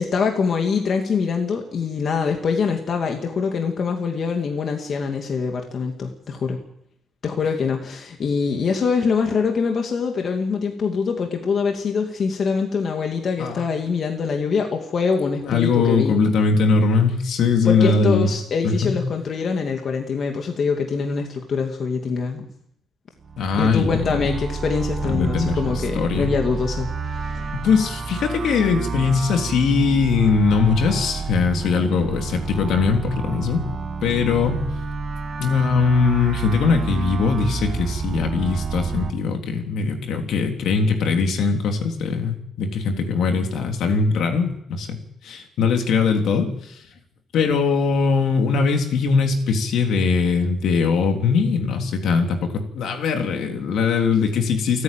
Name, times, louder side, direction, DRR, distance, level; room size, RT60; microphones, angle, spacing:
voice 1, 0.0-6.6 7.2-16.1 17.6-22.5 23.6-27.5, left 5 dB, 55° left, 3 dB, 2.5 m, -24 dB
voice 2, 15.4-18.3 18.6-19.0 23.4-24.3 25.0-26.3 27.5-33.6 34.0-34.6 35.4-46.8 47.3-54.8, left 5 dB, 75° left, 4 dB, 3.4 m, -21 dB
sound 1, 23.2-39.1, right 4 dB, 45° right, 1.9 m, -29 dB
29.0 x 9.7 x 9.2 m, 0.77 s
cardioid pair, 90°, 0 cm